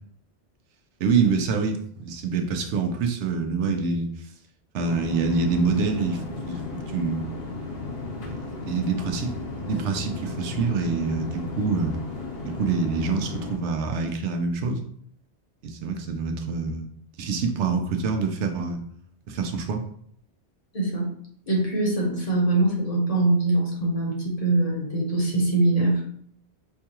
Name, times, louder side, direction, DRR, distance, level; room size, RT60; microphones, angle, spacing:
voice 1, 1.0-4.3 4.7-7.3 8.2-12.0 12.4-14.8 15.6-16.9 17.2-18.8 19.3-19.8, right 4 dB, 90° right, 4 dB, 0.9 m, -26 dB
sound 1, 4.8-13.6, left 3 dB, 60° left, 1.0 m, -34 dB
voice 2, 20.7-21.1 21.5-26.0, right 2 dB, 35° left, -2 dB, 0.9 m, -23 dB
4.6 x 2.3 x 2.9 m, 0.64 s
omnidirectional pair, 1.1 m